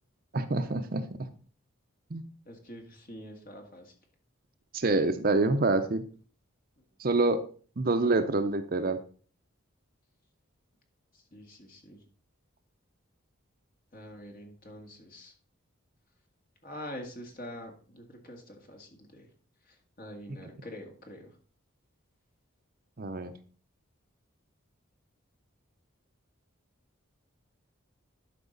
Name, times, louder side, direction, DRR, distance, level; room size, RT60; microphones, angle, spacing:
voice 1, 0.3-1.3 2.1-2.2 4.7-6.1 7.0-7.4 7.8-9.0 23.0-23.3, right 2 dB, 45° right, 9 dB, 0.6 m, -26 dB
voice 2, 2.5-3.9 6.8-6.9 11.1-12.0 13.9-15.3 16.6-19.3 19.6-21.4, left 1 dB, 40° left, 2 dB, 1.9 m, -45 dB
12.0 x 5.1 x 3.9 m, 0.40 s
head